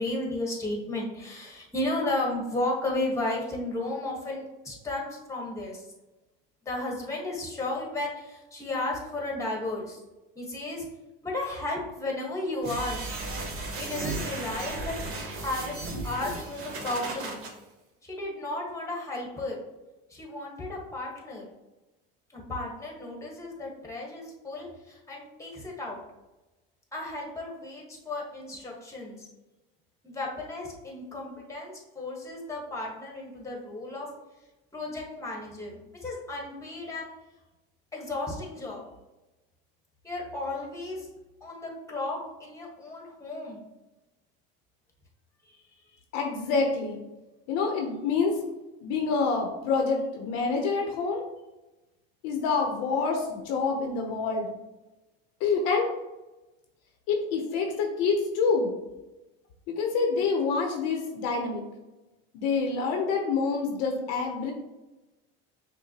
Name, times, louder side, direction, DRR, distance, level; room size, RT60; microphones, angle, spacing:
voice 1, 0.0-5.9 6.6-10.0 10.3-10.9 11.2-13.1 13.8-17.4 18.0-19.6 20.1-21.4 22.3-26.0 26.9-29.3 30.0-34.1 34.7-37.1 37.9-38.9 40.0-41.1 41.4-43.6 45.5-45.6, left 2 dB, 10° left, -1 dB, 1.2 m, -34 dB
sound 1, 12.6-17.5, right 2 dB, 50° right, 1.2 m, -35 dB
voice 2, 46.1-47.0 47.5-48.4 48.8-51.2 52.2-54.5 55.4-55.9 57.1-58.7 59.7-61.6 62.3-64.5, left 4 dB, 60° left, 2 dB, 0.7 m, -27 dB
5.8 x 2.1 x 2.8 m, 1.0 s
supercardioid pair, 95°, 29 cm